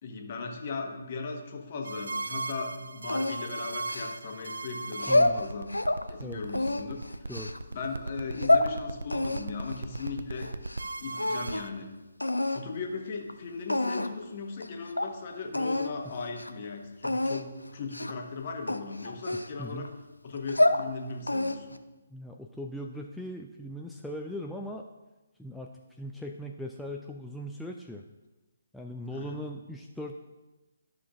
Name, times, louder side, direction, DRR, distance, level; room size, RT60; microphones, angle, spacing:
voice 1, 0.0-7.2 7.7-10.6 11.0-12.0 12.5-19.9 20.2-21.8 29.1-29.5, left 4 dB, 40° left, 2 dB, 1.2 m, -38 dB
sound 1, 1.9-11.7, right 3 dB, 65° right, 0.4 m, -37 dB
sound 2, 3.1-4.4 4.9-6.0 6.5-7.6 8.2-8.7 9.1-10.9 11.1-11.8 12.2-12.6 13.3-13.4 13.7-14.2 14.6-14.7 15.0-15.1 15.5-15.9 16.3-16.5 17.0-17.4 17.9-18.2 18.7-19.9 20.3-20.9 21.3-21.8, left 1 dB, 80° left, 0.5 m, -27 dB
voice 2, 5.1-5.4 6.2-6.4 7.3-7.6 16.0-16.1 19.6-19.9 22.1-24.9 25.4-28.0 28.7-30.1, equal, ahead, 0 dB, 0.3 m, -39 dB
12.5 x 6.1 x 2.5 m, 1.1 s
figure-of-eight pair, 140°, 0 cm